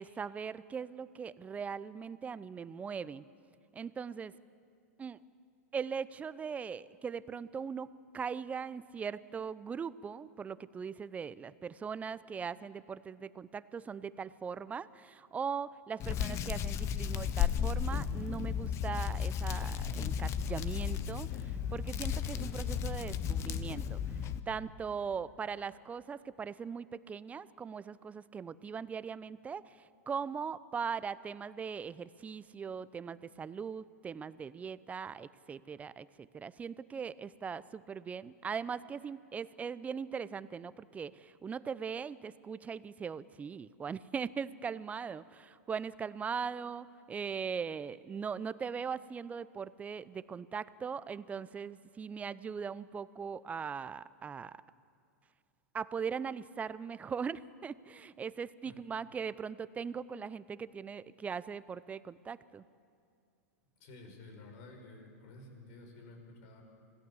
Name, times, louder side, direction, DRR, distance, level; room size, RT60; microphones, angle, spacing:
voice 1, 0.0-3.2 3.7-4.4 5.0-5.2 5.7-54.6 55.7-62.6, right 6 dB, 15° right, 18 dB, 0.5 m, -40 dB
Hands, 16.0-24.4, left 8 dB, 35° left, 1.0 m, -34 dB
voice 2, 63.8-66.6, left 2 dB, 55° left, 3 dB, 5.3 m, -52 dB
26.0 x 17.0 x 7.1 m, 2.3 s
hypercardioid pair, 110°, 8 cm